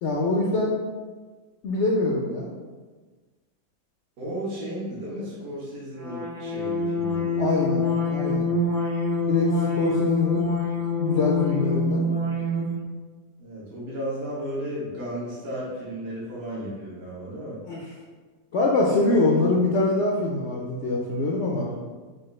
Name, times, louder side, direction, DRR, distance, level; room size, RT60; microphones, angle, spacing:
voice 1, 0.0-0.7 1.6-2.5 7.4-8.5 9.3-10.4 10.9-12.1 17.7-17.8 18.5-21.7, left 2 dB, 70° left, -3 dB, 0.6 m, -24 dB
voice 2, 4.2-7.4 13.4-17.6, equal, 70° right, -8 dB, 1.8 m, -34 dB
sound 1, 6.0-12.8, left 3 dB, 55° right, 0.5 m, -25 dB
6.0 x 2.5 x 3.1 m, 1.4 s
omnidirectional pair, 1.8 m